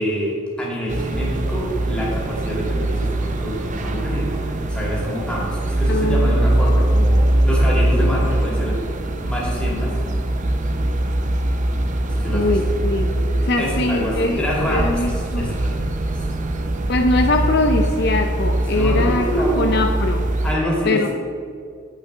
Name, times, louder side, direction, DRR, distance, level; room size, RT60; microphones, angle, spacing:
voice 1, 0.0-8.8 9.2-9.9 12.0-12.6 13.6-16.4 18.7-19.7 20.4-21.1, equal, 5° left, -5 dB, 2.4 m, -26 dB
sound 1, 0.9-20.6, right 1 dB, 40° right, 0.7 m, -22 dB
voice 2, 5.9-6.4 12.3-13.1 13.4-15.5 16.9-19.3 19.6-20.3 20.9-21.1, left 2 dB, 60° left, 4 dB, 0.6 m, -21 dB
8.3 x 6.6 x 5.6 m, 2.3 s
head